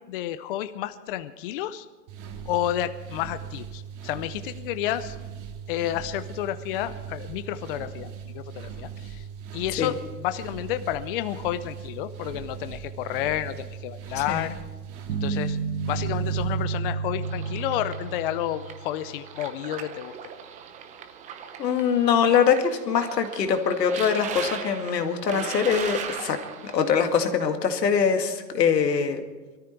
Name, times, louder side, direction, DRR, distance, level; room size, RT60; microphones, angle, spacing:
voice 1, 0.0-1.9 2.5-5.2 5.7-9.3 9.5-14.5 15.2-15.6 15.9-20.1, left 12 dB, 35° left, 12 dB, 0.6 m, -30 dB
sound 1, 2.1-16.6, right 7 dB, 45° right, 2.2 m, -39 dB
sound 2, 15.1-19.3, right 5 dB, 90° right, 1.8 m, -30 dB
sound 3, 17.2-26.9, right 7 dB, 15° right, 0.7 m, -38 dB
voice 2, 21.6-26.4 26.6-29.2, left 7 dB, 85° left, 5 dB, 2.2 m, -23 dB
22.0 x 13.5 x 4.5 m, 1.3 s
hypercardioid pair, 145°, 48 cm